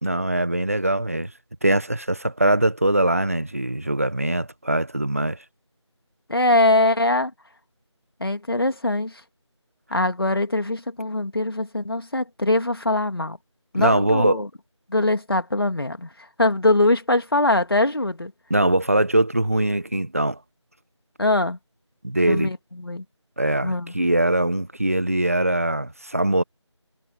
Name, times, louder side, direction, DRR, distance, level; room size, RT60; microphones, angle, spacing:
voice 1, 0.0-1.3 1.6-5.4 13.7-14.4 18.5-20.4 22.0-22.5 23.4-26.4, right 1 dB, 30° right, 1.6 m, -22 dB
voice 2, 6.3-7.3 8.2-9.2 9.9-13.4 13.7-14.5 14.9-16.1 16.4-18.3 21.2-21.6 22.3-23.0 23.6-23.9, left 2 dB, 50° left, 2.9 m, -22 dB
figure-of-eight pair, 180°, 16 cm